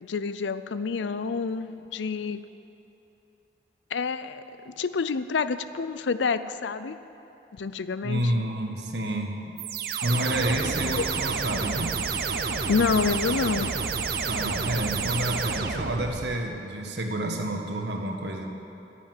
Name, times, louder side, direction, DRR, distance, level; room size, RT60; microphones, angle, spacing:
voice 1, 0.0-2.4 3.9-4.4 4.7-7.0 7.5-8.4 12.7-13.7, left 5 dB, 90° left, 13 dB, 0.5 m, -28 dB
voice 2, 8.0-9.4 10.0-12.0 14.3-18.5, right 1 dB, 75° right, 2 dB, 1.4 m, -29 dB
sound 1, 9.6-16.4, right 5 dB, 55° right, 0.7 m, -29 dB
9.7 x 8.4 x 9.6 m, 3.0 s
head